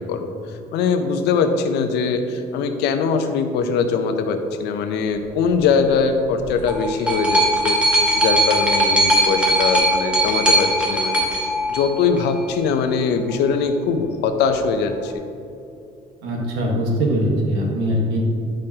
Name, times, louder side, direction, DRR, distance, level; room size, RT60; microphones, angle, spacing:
voice 1, 0.0-7.8 8.2-11.2 11.7-15.2, left 5 dB, 85° left, 6 dB, 0.7 m, -21 dB
sound 1, 6.4-12.4 13.3-13.4, right 1 dB, 5° right, 1.4 m, -19 dB
voice 2, 16.2-18.2, equal, 90° right, -1 dB, 1.5 m, -21 dB
10.5 x 5.1 x 2.9 m, 2.6 s
cardioid pair, 110°, 17 cm